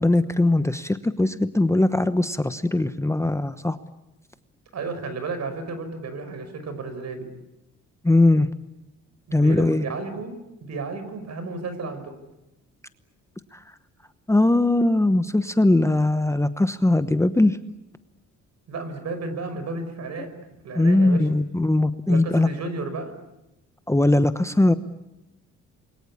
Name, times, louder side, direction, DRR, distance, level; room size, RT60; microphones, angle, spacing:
voice 1, 0.0-3.8 8.0-8.5 9.3-9.8 13.5-13.6 14.3-17.6 20.7-22.5 23.9-24.7, left 2 dB, 10° left, 11 dB, 1.0 m, -20 dB
voice 2, 4.7-7.3 9.3-10.4 10.6-12.1 18.7-20.3 20.6-21.2 22.1-23.1, right 3 dB, 60° right, 9 dB, 5.6 m, -32 dB
28.0 x 22.5 x 8.6 m, 0.93 s
cardioid pair, 90°, 30 cm